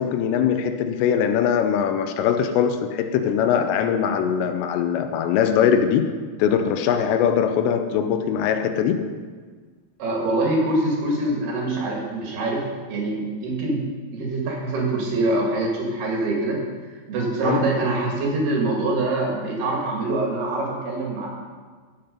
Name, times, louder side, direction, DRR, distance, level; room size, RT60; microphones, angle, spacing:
voice 1, 0.0-6.1 6.4-9.1 17.4-17.6, left 8 dB, 85° left, 7 dB, 2.9 m, -21 dB
voice 2, 10.0-16.7 17.1-21.3, right 2 dB, 70° right, -1 dB, 3.9 m, -24 dB
16.5 x 7.4 x 5.3 m, 1.5 s
omnidirectional pair, 4.9 m